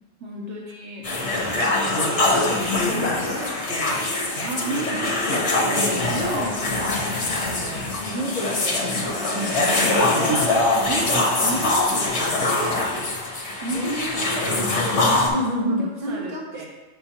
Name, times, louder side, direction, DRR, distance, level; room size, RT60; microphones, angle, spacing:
voice 1, 0.2-1.1 2.8-3.2 4.4-7.1 7.4-9.2 10.8-13.0 13.5-15.1 15.5-16.7, right 2 dB, 65° right, -2 dB, 1.0 m, -33 dB
sound 1, 1.0-15.3, left 2 dB, 60° left, 1.4 m, -23 dB
voice 2, 2.3-3.3 8.1-8.5 9.0-9.7 13.7-14.4 15.3-16.7, equal, 35° right, -2 dB, 1.2 m, -31 dB
7.7 x 5.9 x 2.9 m, 1.2 s
omnidirectional pair, 1.3 m